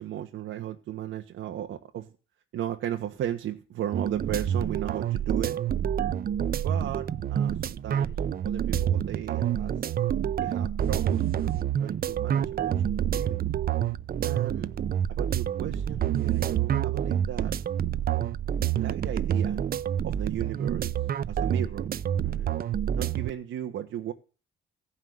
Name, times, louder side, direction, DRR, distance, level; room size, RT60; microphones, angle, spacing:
voice 1, 0.0-2.1 2.5-5.6 6.6-8.2 8.4-9.8 10.4-13.4 14.2-14.7 15.1-17.6 18.8-19.6 20.0-20.9 21.3-21.9 22.2-22.5 23.0-24.1, right 11 dB, 80° right, 4 dB, 1.3 m, -35 dB
sound 1, 3.9-23.3, right 9 dB, 50° right, 0.6 m, -28 dB
16.0 x 5.7 x 9.4 m, 0.37 s
cardioid pair, 90°, 20 cm